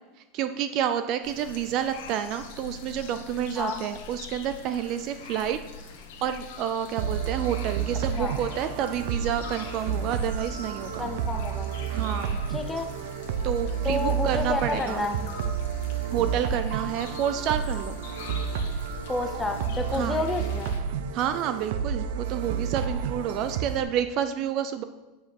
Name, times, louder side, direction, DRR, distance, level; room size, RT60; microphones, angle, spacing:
voice 1, 0.3-5.6 6.2-11.1 11.9-12.4 13.4-15.0 16.1-18.0 19.9-20.2 21.1-24.8, right 9 dB, 35° right, 10 dB, 0.4 m, -29 dB
sound 1, 1.2-20.8, left 5 dB, 65° left, 1.2 m, -44 dB
sound 2, 7.0-23.8, right 7 dB, 65° right, 0.7 m, -31 dB
voice 2, 11.0-11.7 12.5-12.9 13.8-15.2 19.1-20.7, left 2 dB, 5° left, 5 dB, 0.6 m, -29 dB
8.5 x 5.2 x 5.8 m, 1.1 s
supercardioid pair, 180°, 0 cm